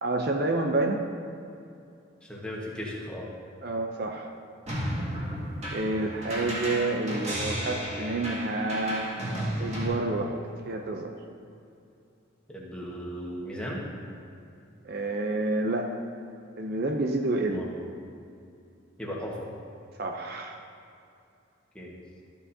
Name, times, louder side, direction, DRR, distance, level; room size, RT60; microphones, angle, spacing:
voice 1, 0.0-1.1 3.6-4.3 5.7-9.1 9.6-10.4 10.7-11.1 14.8-16.0 16.6-17.6 20.0-20.6, right 2 dB, 50° right, 3 dB, 0.5 m, -29 dB
voice 2, 2.2-3.3 12.5-13.9 17.4-17.7 19.0-19.5 21.7-21.9, equal, 5° left, -5 dB, 1.3 m, -36 dB
sound 1, 4.7-9.9, equal, 30° right, 2.1 m, -33 dB
13.0 x 8.5 x 2.7 m, 2.6 s
head